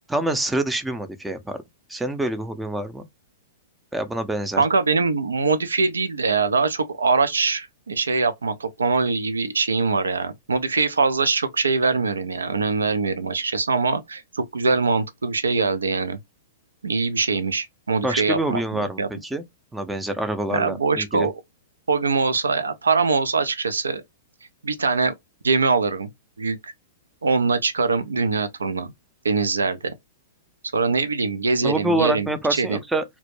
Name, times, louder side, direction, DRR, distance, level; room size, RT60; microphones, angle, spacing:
voice 1, 0.1-1.6 1.9-3.1 3.9-4.6 18.0-19.4 19.7-21.3 31.6-33.0, right 1 dB, 5° right, 0.4 m, -26 dB
voice 2, 4.6-16.2 16.8-18.6 19.0-19.1 20.5-21.3 21.9-24.0 24.6-25.1 25.4-26.1 26.4-26.6 27.2-28.9 29.2-29.9 30.7-32.8, right 4 dB, 90° right, 0.4 m, -22 dB
2.1 x 2.0 x 3.0 m
hypercardioid pair, 115°, 0 cm